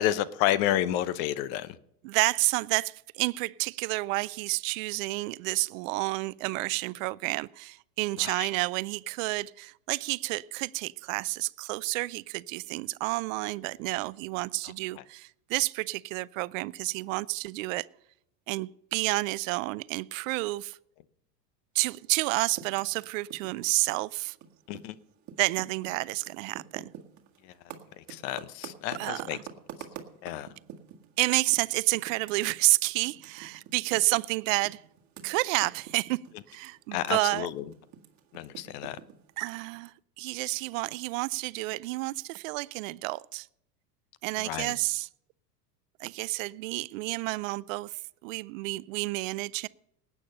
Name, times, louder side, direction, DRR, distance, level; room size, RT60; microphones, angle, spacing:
voice 1, 0.0-1.8 8.2-8.5 14.6-15.0 24.7-24.9 27.4-27.5 28.0-29.4 30.2-30.5 36.9-37.6 38.3-39.0 44.4-44.8, left 13 dB, 55° left, 0.9 m, -30 dB
voice 2, 2.0-17.9 18.5-20.8 21.7-24.4 25.4-26.9 28.9-29.4 31.2-34.8 35.2-36.2 36.5-37.5 39.4-43.5 44.2-45.1 46.0-49.7, right 22 dB, 55° right, 0.5 m, -30 dB
Typing, 22.2-25.0 25.2-31.1 31.5-31.6 31.9-37.1 37.3-39.9, right 9 dB, 35° right, 1.9 m, -46 dB
19.0 x 8.7 x 5.4 m
hypercardioid pair, 95°, 48 cm